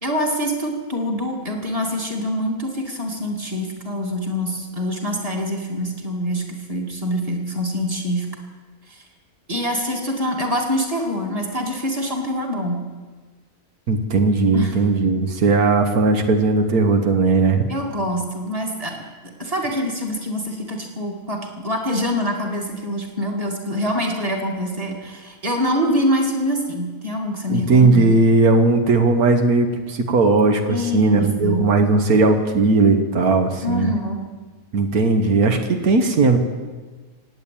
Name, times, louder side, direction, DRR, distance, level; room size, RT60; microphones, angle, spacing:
voice 1, 0.0-8.3 8.9-9.0 9.5-12.8 14.5-14.8 17.7-19.0 19.2-28.1 30.7-31.7 33.6-34.2, equal, 25° right, 1 dB, 2.4 m, -25 dB
voice 2, 13.9-17.6 27.5-33.9 34.7-36.4, right 3 dB, 80° right, 6 dB, 1.6 m, -17 dB
17.5 x 9.2 x 8.8 m, 1.4 s
omnidirectional pair, 1.5 m